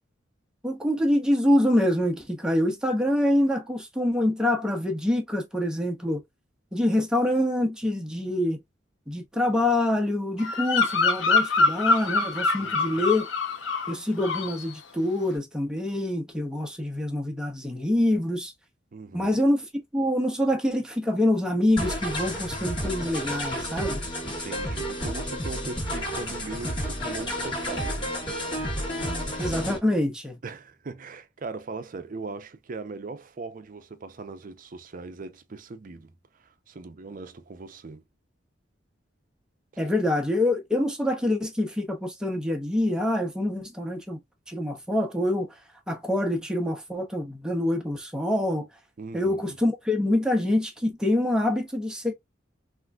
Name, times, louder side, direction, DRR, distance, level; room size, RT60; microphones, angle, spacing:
voice 1, 0.6-6.2 6.7-8.6 9.1-13.3 13.9-18.5 19.1-19.7 19.9-24.0 29.4-30.4 39.8-44.2 44.5-45.5 45.9-48.7 49.1-52.1, left 1 dB, 5° right, 0.8 m, -25 dB
Bird vocalization bird call bird song, 10.4-13.9 14.2-14.6, left 3 dB, 75° left, 0.6 m, -24 dB
voice 2, 12.6-13.0 18.9-19.4 24.2-28.1 30.4-36.1 36.4-38.0 49.0-49.6, right 3 dB, 45° right, 0.5 m, -39 dB
sound 1, 21.8-29.8, equal, 25° left, 1.3 m, -31 dB
3.6 x 2.5 x 2.3 m
head